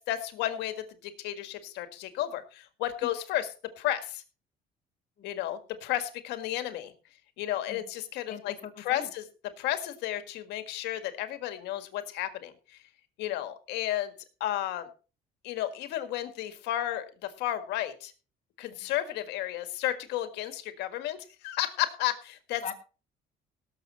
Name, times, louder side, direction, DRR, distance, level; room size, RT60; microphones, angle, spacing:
voice 1, 0.1-3.5 3.8-4.2 5.2-6.9 7.4-9.2 9.6-12.5 13.2-14.1 14.4-14.9 15.4-18.1 18.6-22.6, left 13 dB, 90° left, 9 dB, 1.7 m, -33 dB
voice 2, 8.3-9.1 13.3-13.5 18.7-18.9 22.6-22.7, left 7 dB, 45° left, 5 dB, 2.3 m, -43 dB
18.0 x 7.2 x 4.2 m, 0.35 s
cardioid pair, 110°, 17 cm